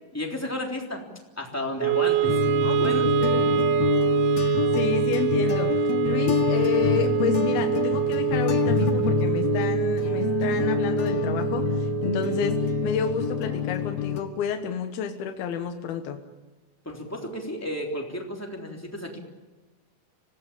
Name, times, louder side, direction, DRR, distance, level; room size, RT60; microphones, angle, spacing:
voice 1, 0.1-1.0 1.4-3.1 16.8-19.2, left 1 dB, 5° left, 0 dB, 3.0 m, -32 dB
Wind instrument woodwind instrument, 1.8-14.0, right 14 dB, 70° right, 2.1 m, -26 dB
sound 1, 2.2-14.2, left 9 dB, 55° left, 2.2 m, -26 dB
voice 2, 3.2-3.7 4.3-5.7 6.0-16.2, left 7 dB, 80° left, 5 dB, 3.1 m, -30 dB
26.0 x 18.0 x 8.8 m, 1.2 s
omnidirectional pair, 4.4 m